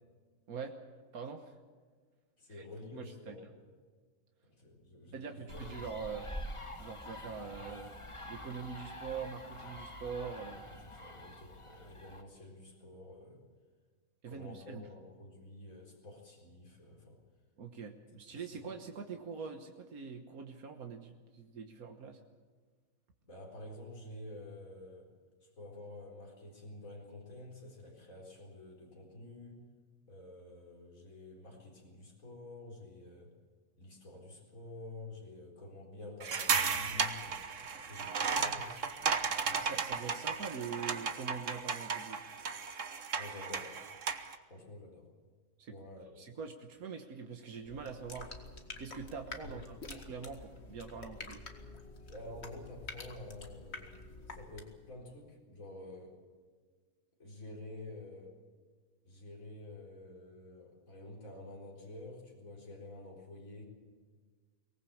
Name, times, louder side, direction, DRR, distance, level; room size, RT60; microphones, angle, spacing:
voice 1, 1.1-1.6 2.5-2.6 2.9-3.4 5.1-6.3 6.8-7.9 8.3-10.6 14.2-14.9 17.6-22.2 39.6-42.2 45.6-45.9 46.2-48.3 48.8-51.4, right 6 dB, 85° right, 4 dB, 1.8 m, -43 dB
voice 2, 2.4-3.6 4.6-5.8 10.9-13.4 14.3-17.2 18.3-18.7 23.3-25.1 25.4-29.6 30.1-33.3 33.8-37.4 37.8-39.7 43.1-43.8 44.5-45.1 45.7-46.3 49.4-49.7 52.1-53.9 54.3-56.2 57.2-58.4 59.0-63.6, left 2 dB, 70° left, -1 dB, 4.6 m, -49 dB
sound 1, 5.5-12.2, left 1 dB, 20° left, 1.8 m, -46 dB
sound 2, 36.2-44.4, right 6 dB, 60° right, 1.5 m, -35 dB
sound 3, 47.6-54.9, left 3 dB, 50° left, 2.3 m, -48 dB
24.0 x 19.0 x 7.2 m, 1.5 s
omnidirectional pair, 1.5 m